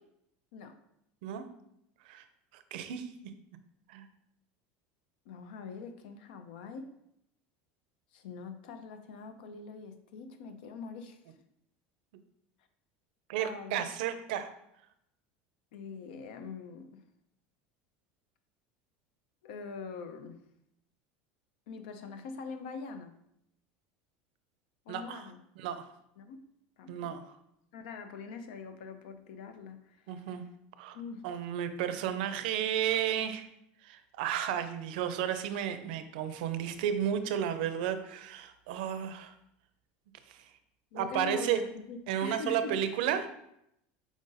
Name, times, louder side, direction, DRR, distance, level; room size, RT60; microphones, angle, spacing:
voice 1, 2.5-3.3 3.9-4.1 13.3-14.5 24.9-25.3 25.6-25.9 26.9-27.2 30.1-30.4 30.8-31.0 31.2-33.5 33.8-39.3 40.3-40.4 40.9-41.6 42.1-43.3, right 9 dB, 80° right, 10 dB, 0.4 m, -33 dB
voice 2, 5.3-6.9 8.1-11.2 13.4-13.8 15.7-17.0 19.4-20.4 21.7-23.1 24.9-25.4 26.2-26.4 26.8-27.1 27.7-30.1 30.9-31.2 40.9-42.8, left 4 dB, 90° left, 8 dB, 0.5 m, -43 dB
4.8 x 2.6 x 3.9 m, 0.78 s
cardioid pair, 160°, 5 cm